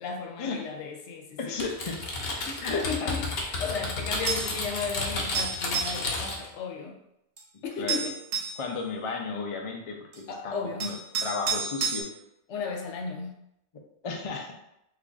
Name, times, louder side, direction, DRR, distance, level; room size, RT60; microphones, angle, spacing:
voice 1, 0.0-1.6 2.5-7.0 7.6-8.1 10.3-10.9 12.5-13.4, left 5 dB, 90° left, 2 dB, 1.0 m, -34 dB
voice 2, 1.4-2.0 2.6-3.1 7.8-8.1 8.6-11.0 11.2-12.1 14.0-14.5, left 4 dB, 45° left, 2 dB, 0.4 m, -34 dB
Typing, 1.6-6.5, left 2 dB, 65° left, 0.9 m, -32 dB
sound 1, 4.3-4.6 5.3-6.0 7.4-7.5 7.9-8.6 10.1-10.2 10.8-12.0, right 5 dB, 80° right, 1.0 m, -30 dB
3.2 x 2.3 x 3.8 m, 0.83 s
omnidirectional pair, 1.1 m